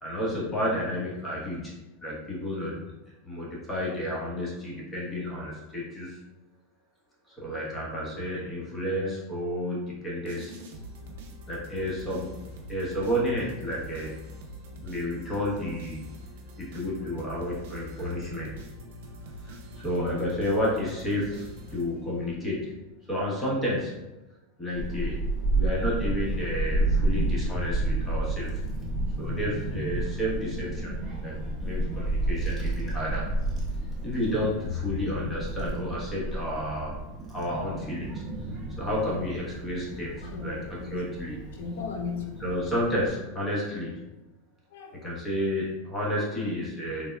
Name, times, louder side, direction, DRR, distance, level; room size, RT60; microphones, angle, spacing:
voice 1, 0.0-1.7 2.0-2.8 3.2-6.2 7.4-10.5 11.5-12.3 12.7-14.2 14.8-16.1 16.6-18.6 19.4-22.7 23.1-23.9 24.6-25.2 25.5-28.5 29.2-31.3 31.6-33.2 34.0-36.9 37.3-38.5 38.8-41.4 42.4-43.9 45.0-47.1, left 1 dB, 15° left, -5 dB, 1.1 m, -31 dB
sound 1, 10.3-22.4, equal, 70° right, 0.5 m, -44 dB
Child speech kid speaking / Wind, 24.7-43.1, right 2 dB, 20° right, 0.7 m, -31 dB
voice 2, 40.2-41.1 41.5-42.6 44.7-45.1, left 5 dB, 75° left, 3 dB, 0.5 m, -37 dB
3.4 x 2.1 x 2.3 m, 1.0 s
hypercardioid pair, 110°, 0 cm